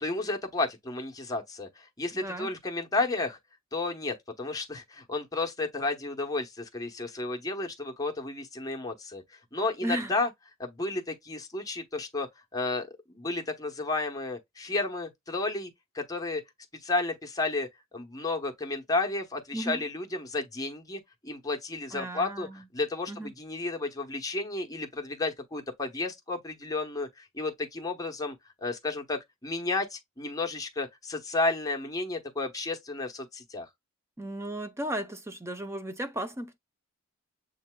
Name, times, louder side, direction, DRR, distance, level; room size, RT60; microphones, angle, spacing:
voice 1, 0.0-3.4 3.7-10.3 10.6-15.7 15.9-16.4 16.8-28.3 28.6-33.7, left 3 dB, 15° left, 1.0 m, -32 dB
voice 2, 2.1-2.5 9.8-10.1 19.5-19.8 21.9-22.6 23.1-23.3 34.2-36.6, right 1 dB, 15° right, 0.7 m, -35 dB
7.4 x 2.8 x 2.2 m
head